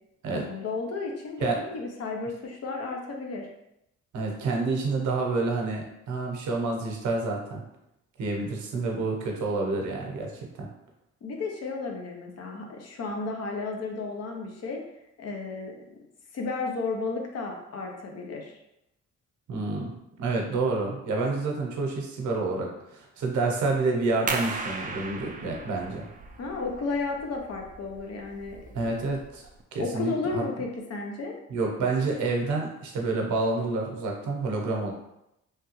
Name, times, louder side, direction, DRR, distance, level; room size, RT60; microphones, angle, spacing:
voice 1, 0.3-3.5 11.2-14.8 15.2-15.7 16.3-18.5 26.4-28.6 29.8-31.4, left 3 dB, 55° left, 2 dB, 0.7 m, -33 dB
voice 2, 4.1-7.6 8.2-10.7 19.5-19.9 20.2-26.1 28.7-29.4 29.7-30.4 31.5-34.9, right 3 dB, 75° right, 0 dB, 0.8 m, -28 dB
sound 1, 24.3-29.6, right 4 dB, 30° right, 0.4 m, -37 dB
3.2 x 2.3 x 3.0 m, 0.85 s
cardioid pair, 90°, 30 cm